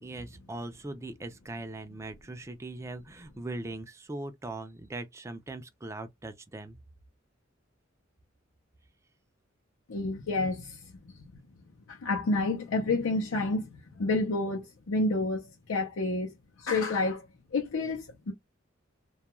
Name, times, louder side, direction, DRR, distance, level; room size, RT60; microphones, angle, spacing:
voice 1, 0.0-6.8, right 2 dB, 15° right, 0.3 m, -40 dB
voice 2, 9.9-10.8 11.9-16.3 16.6-17.3 17.5-18.3, left 2 dB, 80° left, 0.6 m, -29 dB
2.3 x 2.2 x 2.9 m
head